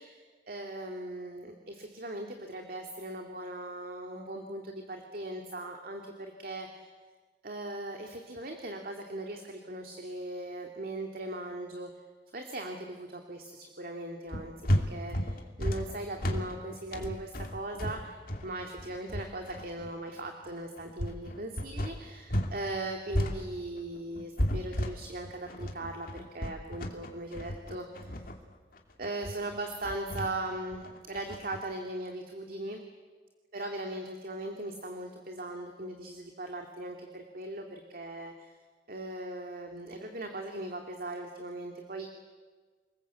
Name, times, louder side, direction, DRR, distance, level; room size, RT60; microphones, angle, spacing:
voice 1, 0.0-6.9 7.4-11.9 12.3-28.3 29.0-32.8 33.5-38.5 38.9-42.1, right 1 dB, 55° right, 3 dB, 2.3 m, -39 dB
sound 1, 14.3-22.6 22.8-31.6, equal, 55° left, 2.6 m, -33 dB
29.0 x 20.5 x 8.2 m, 1.4 s
head